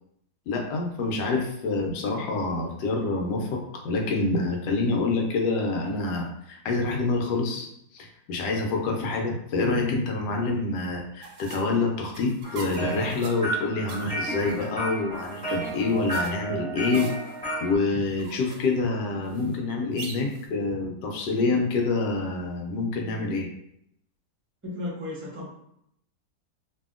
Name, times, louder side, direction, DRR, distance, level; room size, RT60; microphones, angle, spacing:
voice 1, 0.5-7.7 7.9-17.1 17.6-23.5, left 3 dB, 75° left, 1 dB, 1.2 m, -27 dB
sound 1, 11.2-20.5, right 4 dB, 75° right, 1.1 m, -43 dB
sound 2, 12.4-17.8, right 2 dB, 5° left, 1.0 m, -32 dB
voice 2, 24.6-25.5, left 2 dB, 10° right, -7 dB, 0.6 m, -34 dB
2.7 x 2.7 x 2.4 m, 0.74 s
omnidirectional pair, 1.9 m